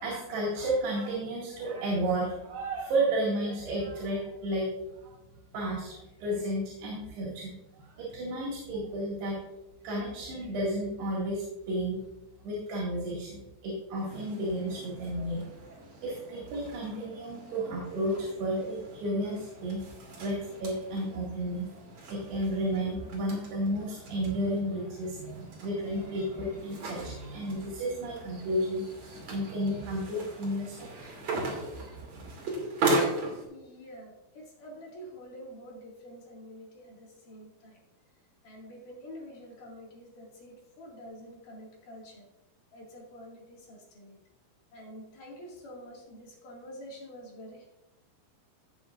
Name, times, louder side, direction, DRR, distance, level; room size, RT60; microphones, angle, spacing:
voice 1, 0.0-4.7 5.0-5.1 5.5-9.4 9.8-12.0 12.4-15.4 16.0-19.8 20.2-21.7 22.1-28.8 29.3-31.1, right 1 dB, 80° right, -5 dB, 4.2 m, -32 dB
sound 1, 13.9-33.5, right 2 dB, 45° right, 3.1 m, -38 dB
voice 2, 33.5-37.8 38.4-42.3 42.7-44.2 44.7-47.7, equal, 60° left, -2 dB, 3.5 m, -47 dB
16.5 x 6.8 x 2.5 m, 0.97 s
omnidirectional pair, 4.6 m